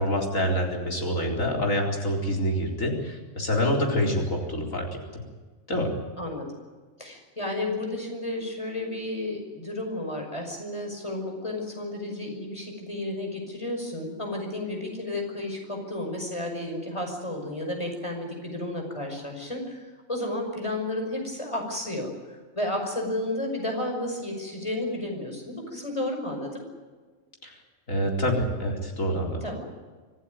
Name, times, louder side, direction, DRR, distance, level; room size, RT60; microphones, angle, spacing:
voice 1, 0.0-5.2 5.7-5.9 27.4-27.6 27.9-29.4, equal, 75° left, 0 dB, 4.5 m, -26 dB
voice 2, 6.2-6.5 7.0-26.6 29.4-29.7, left 1 dB, 20° left, 2 dB, 5.7 m, -32 dB
25.5 x 15.0 x 9.6 m, 1.4 s
omnidirectional pair, 1.4 m